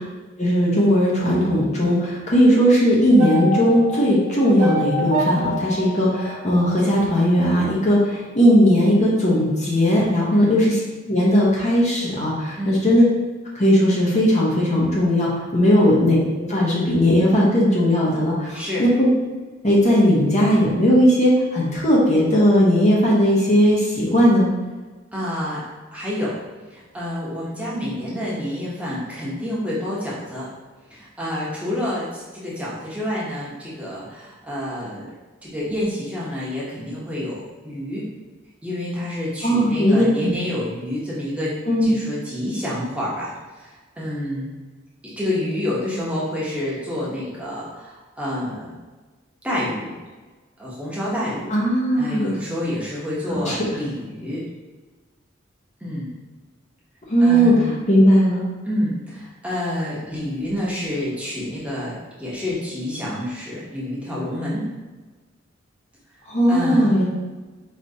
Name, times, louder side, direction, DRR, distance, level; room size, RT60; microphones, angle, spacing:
voice 1, 0.4-8.0 8.3-10.7 11.1-13.0 13.5-19.1 19.6-24.5 39.4-40.3 41.7-41.9 51.5-52.4 53.5-53.6 57.1-57.5 57.9-58.4 66.3-67.0, equal, 35° left, -5 dB, 0.9 m, -17 dB
sound 1, 3.2-7.4, equal, 75° right, 0.9 m, -27 dB
voice 2, 18.5-18.8 25.1-25.6 25.9-26.4 26.7-30.5 30.9-35.1 35.4-38.0 38.6-41.5 41.8-43.3 43.6-43.7 44.0-44.5 45.2-48.7 49.4-50.0 50.6-51.5 51.9-54.4 55.8-56.1 57.2-57.8 58.7-64.6 66.5-66.9, left 1 dB, 5° right, -8 dB, 0.9 m, -28 dB
4.9 x 2.9 x 2.8 m, 1.3 s
head